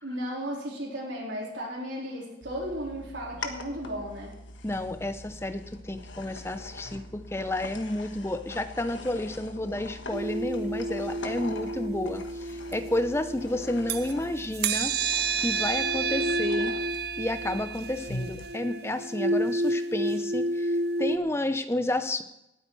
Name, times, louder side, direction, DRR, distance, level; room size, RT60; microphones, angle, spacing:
voice 1, 0.0-4.3, equal, 75° right, -4 dB, 4.0 m, -35 dB
sound 1, 2.4-18.5, left 2 dB, 80° left, 1.5 m, -43 dB
voice 2, 4.6-14.9 15.4-16.7 17.2-22.2, left 1 dB, 15° left, 10 dB, 0.6 m, -31 dB
sound 2, 10.1-14.1 14.5-21.2, right 2 dB, 55° right, 0.8 m, -30 dB
18.0 x 8.8 x 4.7 m, 0.87 s
head